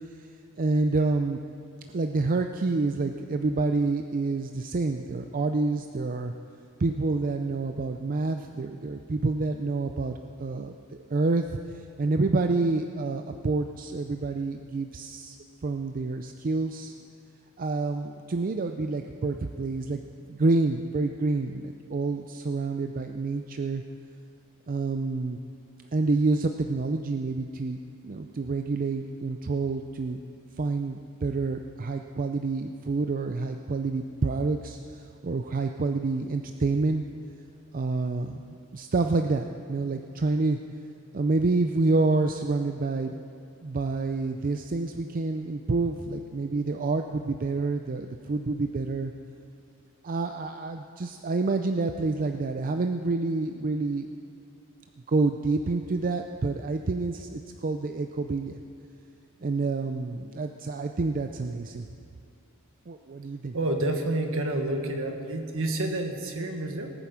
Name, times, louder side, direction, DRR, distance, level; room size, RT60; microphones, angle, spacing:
voice 1, 0.6-1.4 1.9-6.3 6.8-15.4 15.6-16.9 17.6-20.0 20.3-23.8 24.7-25.4 25.9-27.8 28.0-30.2 30.6-37.1 37.7-40.6 41.1-43.2 43.6-49.1 50.0-54.1 55.1-58.6 59.4-61.9 62.9-63.6, right 3 dB, 40° right, 6 dB, 0.5 m, -28 dB
voice 2, 63.5-66.9, right 1 dB, 65° right, 4 dB, 1.6 m, -29 dB
19.0 x 9.2 x 5.9 m, 2.4 s
head